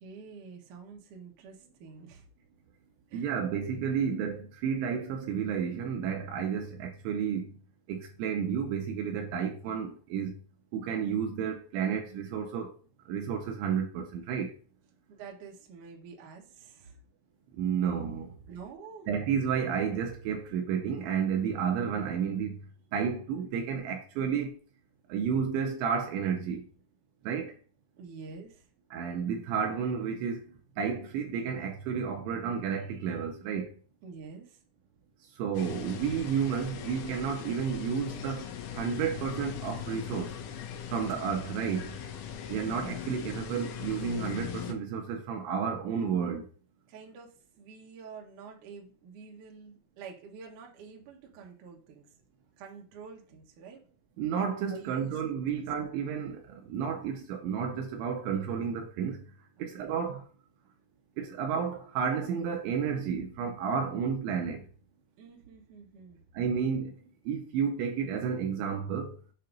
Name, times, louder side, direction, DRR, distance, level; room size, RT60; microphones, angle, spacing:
voice 1, 0.0-2.3 3.1-3.3 15.1-17.0 18.5-19.1 28.0-28.7 34.0-34.6 46.9-52.1 52.6-53.8 54.7-55.6 59.6-59.9 65.2-66.2, right 5 dB, 65° right, 2.1 m, -48 dB
voice 2, 3.1-7.5 7.9-10.3 10.7-12.7 13.1-14.5 17.6-18.3 19.1-22.6 22.9-24.6 25.1-26.6 27.3-27.5 28.9-30.4 30.8-33.7 35.4-38.5 38.8-40.3 40.9-41.9 42.5-46.5 54.2-56.4 56.7-59.2 59.6-60.2 61.2-64.6 66.4-66.9 67.3-69.1, right 7 dB, 85° right, 2.8 m, -31 dB
sound 1, 35.5-44.7, left 8 dB, 85° left, 3.0 m, -40 dB
7.6 x 2.8 x 5.0 m
omnidirectional pair, 5.6 m